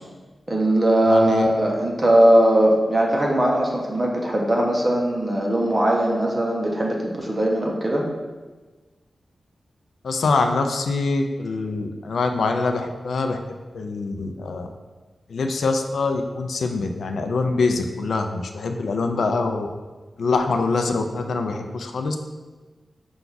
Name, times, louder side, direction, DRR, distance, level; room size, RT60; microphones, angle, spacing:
voice 1, 0.5-8.0, right 1 dB, 20° right, -1 dB, 0.7 m, -19 dB
voice 2, 1.1-1.5 10.0-13.4 13.7-14.7 15.3-19.7 20.2-22.2, left 3 dB, 85° left, 5 dB, 0.3 m, -24 dB
5.8 x 2.3 x 3.9 m, 1.3 s
wide cardioid pair, 175°, 0 cm